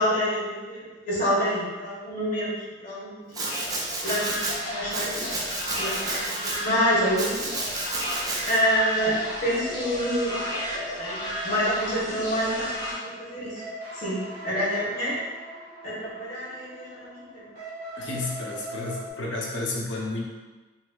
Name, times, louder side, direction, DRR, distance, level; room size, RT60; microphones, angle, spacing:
voice 1, 0.0-2.5 2.8-3.4 4.0-7.4 8.5-10.3 10.7-13.6 13.9-14.2 14.4-15.1 15.8-17.4, equal, 50° left, -7 dB, 1.2 m, -27 dB
Domestic sounds home sounds, 3.3-4.6 4.9-6.6 7.2-8.6, right 2 dB, 20° right, 0.4 m, -31 dB
sound 1, 3.4-12.9, left 1 dB, 25° left, 0.7 m, -33 dB
sound 2, 9.5-19.1, right 1 dB, 50° right, 1.2 m, -40 dB
voice 2, 18.0-20.2, left 2 dB, 75° left, -2 dB, 0.6 m, -31 dB
4.0 x 2.6 x 2.3 m, 1.3 s
head